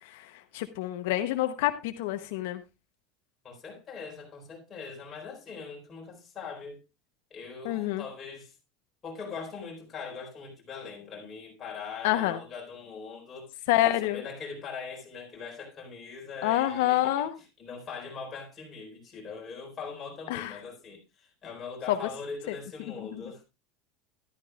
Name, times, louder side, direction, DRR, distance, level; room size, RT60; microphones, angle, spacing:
voice 1, 0.0-2.6 7.6-8.0 12.0-12.4 13.7-14.2 16.4-17.3 20.3-20.6 21.9-22.0, left 14 dB, 80° left, 0.8 m, -27 dB
voice 2, 3.4-6.8 7.3-8.5 9.0-17.2 17.6-23.4, left 5 dB, 20° left, 4.2 m, -41 dB
13.5 x 12.0 x 2.4 m
cardioid pair, 155°, 0 cm